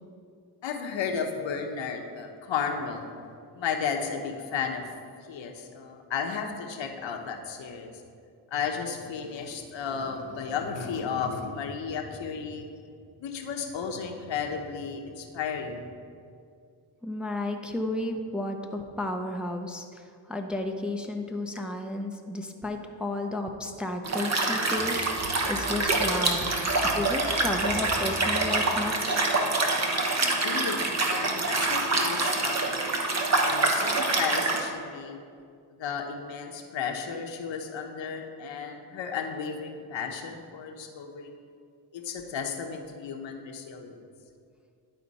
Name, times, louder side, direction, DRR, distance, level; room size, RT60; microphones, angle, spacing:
voice 1, 0.6-3.1 3.5-4.8 5.3-7.9 8.5-12.7 13.2-15.9 26.4-26.6 30.2-32.9 33.4-35.2 35.8-41.3 41.9-44.0, left 6 dB, 65° left, 3 dB, 1.0 m, -33 dB
voice 2, 17.0-20.0 20.3-26.5 26.9-29.3, left 1 dB, ahead, 2 dB, 0.7 m, -33 dB
Liquid, 24.0-34.6, right 2 dB, 35° right, 1.2 m, -26 dB
sound 1, 24.7-31.6, equal, 85° right, 1.9 m, -44 dB
11.5 x 4.3 x 4.1 m, 2.3 s
supercardioid pair, 60°, 47 cm